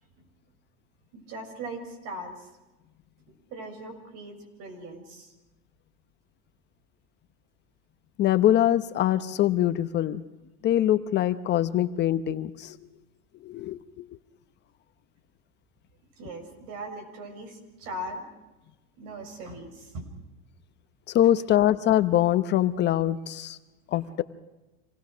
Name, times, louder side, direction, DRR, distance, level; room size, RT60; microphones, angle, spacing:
voice 1, 1.1-2.5 3.5-5.3 16.2-18.2 19.0-20.1 23.9-24.2, right 1 dB, 55° right, 5 dB, 6.5 m, -39 dB
voice 2, 8.2-10.2 10.6-12.8 13.4-14.0 21.1-23.6 23.9-24.2, left 12 dB, 35° left, 12 dB, 0.9 m, -23 dB
26.5 x 19.0 x 6.3 m, 1.1 s
supercardioid pair, 130°, 30 cm